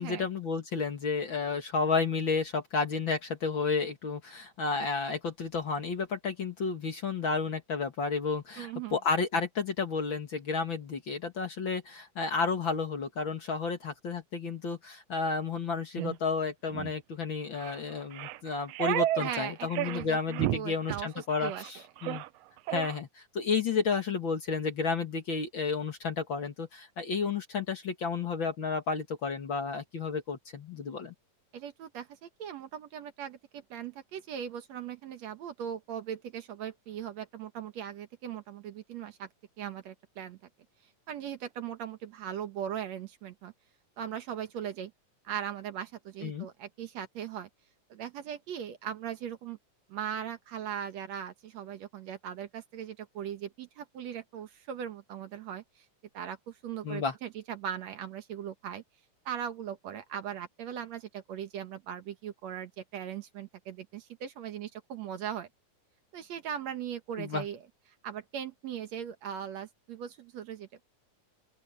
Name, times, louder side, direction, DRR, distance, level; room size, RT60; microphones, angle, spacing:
voice 1, 0.0-22.2 22.7-31.1 46.2-46.5 56.8-57.1 67.2-67.4, left 5 dB, 45° left, 2.1 m, -32 dB
voice 2, 8.6-9.0 19.2-21.7 31.5-39.3 39.6-40.4 41.1-43.5 44.0-44.9 45.2-47.5 47.9-49.6 49.9-55.9 56.1-58.8 59.3-65.5 66.1-67.6 68.0-70.9, right 9 dB, 65° right, 2.3 m, -39 dB
sound 1, 16.0-16.1 16.7-16.9 17.6-17.8 18.1-19.4 19.7-20.1 20.3-20.6 20.8-21.0 21.4-21.7 22.0-22.3 22.7-23.0, right 14 dB, 85° right, 1.4 m, -32 dB
open air
omnidirectional pair, 3.5 m